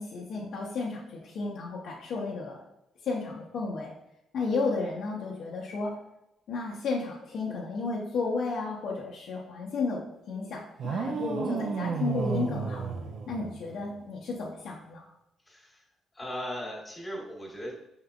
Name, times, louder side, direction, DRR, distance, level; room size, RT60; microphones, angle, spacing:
voice 1, 0.0-2.6 3.0-3.9 4.3-5.9 6.5-12.9 13.3-15.1, left 3 dB, 70° left, -3 dB, 0.8 m, -33 dB
sound 1, 10.8-13.9, right 5 dB, 65° right, 0.6 m, -32 dB
voice 2, 15.4-15.8 16.1-17.7, equal, 20° left, -3 dB, 1.4 m, -38 dB
5.6 x 3.6 x 2.3 m, 0.86 s
cardioid pair, 90°, 0 cm